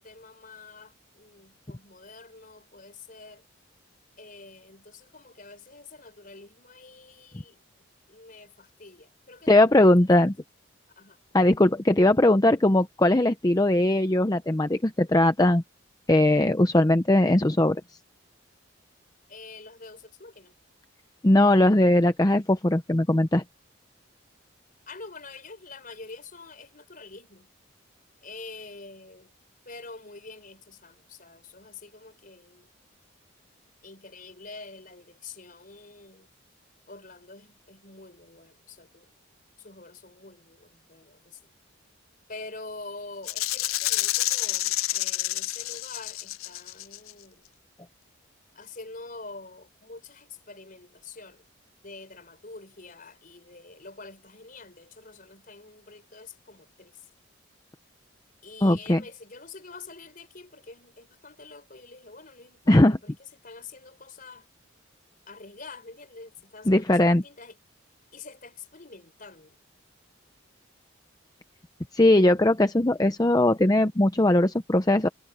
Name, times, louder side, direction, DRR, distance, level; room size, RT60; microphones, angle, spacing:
voice 1, 0.0-3.4 4.2-7.6 8.1-10.2 11.0-11.2 19.3-20.5 24.9-27.5 28.2-29.3 29.6-32.7 33.8-36.3 36.9-39.1 39.6-41.4 42.3-47.4 48.5-51.4 51.8-57.1 58.4-64.5 65.3-67.6 68.1-69.5, left 3 dB, 45° left, 4.6 m, -46 dB
voice 2, 9.5-10.3 11.3-15.6 16.1-17.8 21.2-23.4 58.6-59.0 62.7-63.0 66.7-67.2 71.9-75.1, left 1 dB, 20° left, 0.7 m, -20 dB
Rattle (instrument), 43.3-47.1, left 16 dB, 90° left, 0.5 m, -28 dB
head